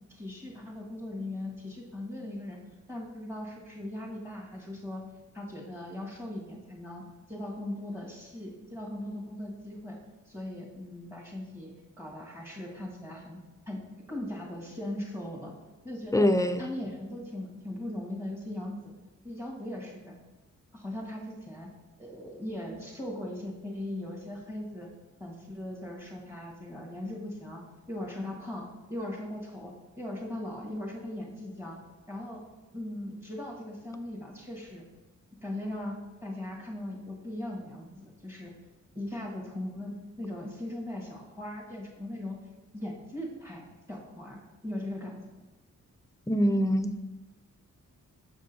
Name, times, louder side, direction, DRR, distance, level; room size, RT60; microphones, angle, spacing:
voice 1, 0.1-2.6 2.9-5.0 5.3-7.0 7.3-10.0 10.3-13.4 13.7-13.8 14.1-15.5 15.8-16.3 16.6-18.9 19.2-20.1 20.7-21.7 22.0-24.9 25.2-27.6 27.9-31.8 32.1-32.4 32.7-34.8 35.4-38.5 38.9-42.4 42.7-45.1, left 1 dB, 10° right, -2 dB, 1.6 m, -39 dB
voice 2, 16.1-16.6 46.3-47.0, equal, 10° left, 8 dB, 0.3 m, -24 dB
7.0 x 5.2 x 2.7 m, 1.2 s
cardioid pair, 80°, 31 cm